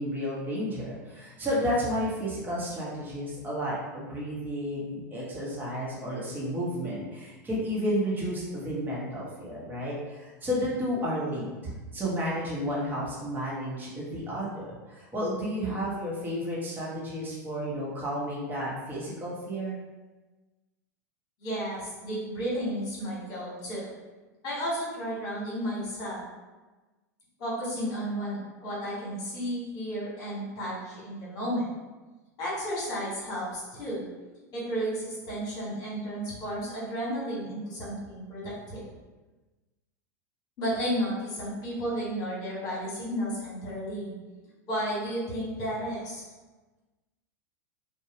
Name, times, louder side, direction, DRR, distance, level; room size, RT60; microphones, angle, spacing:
voice 1, 0.0-19.8, equal, 20° right, -6 dB, 1.1 m, -32 dB
voice 2, 21.4-23.9 24.4-26.2 27.4-31.7 32.4-34.0 34.5-38.8 40.6-44.1 44.7-46.2, equal, 45° left, -6 dB, 1.4 m, -33 dB
2.6 x 2.3 x 2.9 m, 1.2 s
hypercardioid pair, 90°, 9 cm